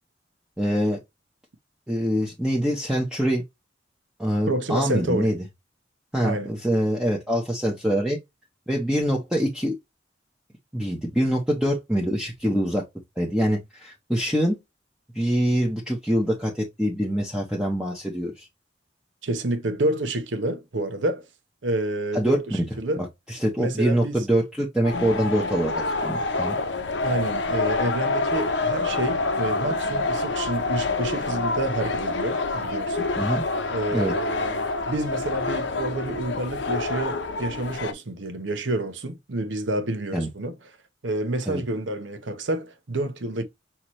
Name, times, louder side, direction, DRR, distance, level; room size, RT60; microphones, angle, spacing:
voice 1, 0.6-1.0 1.9-3.4 4.2-5.4 6.1-8.2 8.7-9.7 10.7-12.8 13.2-14.6 15.1-18.5 22.1-22.7 23.0-25.7 26.0-26.6 33.2-33.4 33.9-34.1 40.1-40.3 41.5-41.6, equal, 5° right, 0.8 m, -24 dB
voice 2, 4.5-5.3 6.2-6.5 19.2-21.3 21.6-23.1 23.6-24.3 27.0-33.3 33.7-40.7 41.0-43.4, right 1 dB, 85° right, 1.0 m, -29 dB
sound 1, 24.8-37.9, left 3 dB, 70° left, 0.8 m, -27 dB
5.8 x 2.9 x 3.1 m
head